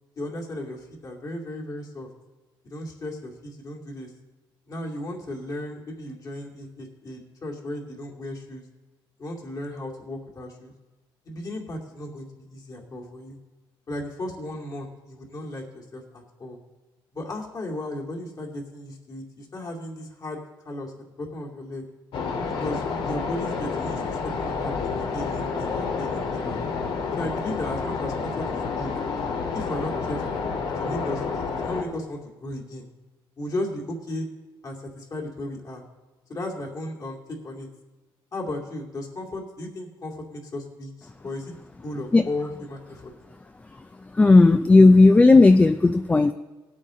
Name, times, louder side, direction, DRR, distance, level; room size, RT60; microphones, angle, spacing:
voice 1, 0.2-2.1 2.6-4.1 4.7-8.6 9.2-10.7 11.3-13.4 13.9-16.6 17.1-21.8 22.6-26.6 27.2-28.9 29.5-30.4 30.8-32.9 33.4-34.3 34.6-35.8 36.3-37.7 38.3-41.6 41.8-43.1, left 1 dB, 40° left, -1 dB, 2.4 m, -35 dB
sound 1, 22.1-31.8, left 5 dB, 75° left, 1.9 m, -29 dB
voice 2, 44.1-46.3, left 3 dB, 15° left, 9 dB, 0.4 m, -14 dB
18.5 x 8.3 x 3.8 m, 1.2 s
cardioid pair, 125°, 9 cm